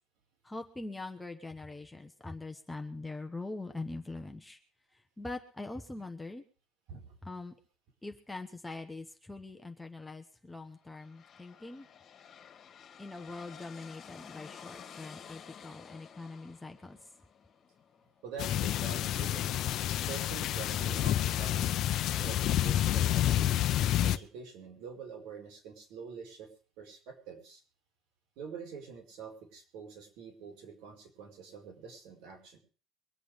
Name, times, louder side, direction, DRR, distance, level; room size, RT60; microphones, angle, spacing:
voice 1, 0.4-4.6 4.9-6.4 7.2-7.5 8.0-11.9 13.0-17.1, left 2 dB, 5° left, 4 dB, 0.9 m, -43 dB
sound 1, 10.8-18.5, left 7 dB, 35° left, 1.9 m, -52 dB
voice 2, 18.2-19.6 20.0-21.8 22.1-27.6 28.4-32.6, right 5 dB, 85° right, 3 dB, 4.9 m, -46 dB
sound 2, 18.4-24.2, left 12 dB, 50° left, 0.7 m, -29 dB
23.0 x 8.5 x 5.2 m, 0.39 s
cardioid pair, 165°, 0 cm